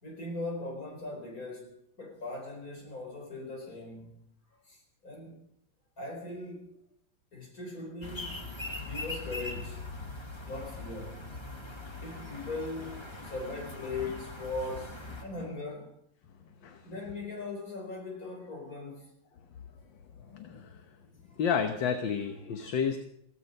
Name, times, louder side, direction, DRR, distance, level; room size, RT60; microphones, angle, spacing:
voice 1, 0.0-4.3 4.6-5.4 6.0-6.8 7.3-8.5 8.8-9.9 10.4-11.3 12.0-16.0 16.8-19.1 20.5-20.6 21.1-21.4, left 2 dB, 40° left, 4.8 m, -40 dB
sound 1, 8.0-15.2, left 2 dB, 15° left, 1.5 m, -41 dB
voice 2, 20.3-20.7 21.4-23.0, left 7 dB, 65° left, 1.8 m, -30 dB
16.0 x 15.5 x 5.4 m
omnidirectional pair, 2.3 m